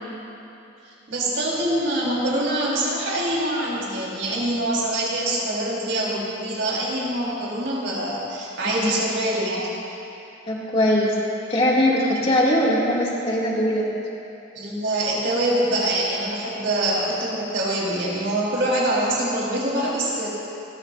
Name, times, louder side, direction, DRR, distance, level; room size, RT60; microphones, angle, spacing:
voice 1, 1.1-9.7 14.5-20.3, right 1 dB, 70° right, -5 dB, 4.4 m, -24 dB
voice 2, 10.5-11.1 11.5-13.8, left 1 dB, 30° left, -5 dB, 2.5 m, -21 dB
29.5 x 14.5 x 2.7 m, 2.9 s
head